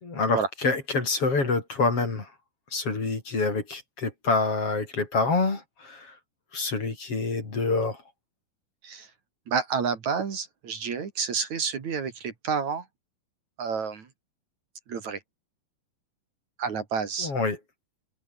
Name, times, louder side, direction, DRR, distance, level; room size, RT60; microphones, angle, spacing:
voice 1, 0.0-2.3 2.7-6.2 6.5-8.0 17.2-17.6, left 3 dB, 40° left, 5.5 m, -27 dB
voice 2, 9.5-12.9 13.6-14.1 14.9-15.2 16.6-17.3, right 6 dB, 55° right, 3.9 m, -29 dB
omnidirectional pair, 3.9 m